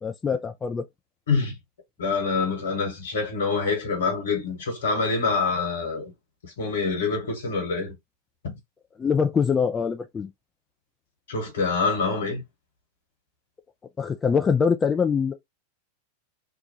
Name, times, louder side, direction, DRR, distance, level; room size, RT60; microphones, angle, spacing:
voice 1, 0.0-0.8 9.0-10.3 14.0-15.3, left 6 dB, 20° left, 0.4 m, -23 dB
voice 2, 2.0-6.1 6.4-7.9 8.4-8.5 11.3-12.4, left 4 dB, 65° left, 1.4 m, -26 dB
2.7 x 2.2 x 2.9 m
figure-of-eight pair, 90°, 0 cm